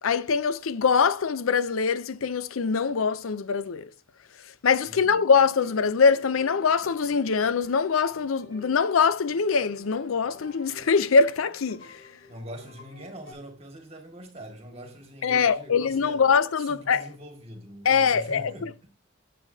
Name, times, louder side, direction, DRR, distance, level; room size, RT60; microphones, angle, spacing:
voice 1, 0.0-3.9 4.4-12.0 15.2-17.1 17.8-18.9, left 5 dB, 85° left, 0.6 m, -23 dB
voice 2, 4.8-5.2 12.3-16.2 16.6-18.8, equal, 30° right, 1.9 m, -43 dB
sound 1, 5.0-13.3, left 1 dB, 70° left, 4.1 m, -51 dB
10.5 x 7.7 x 2.7 m
head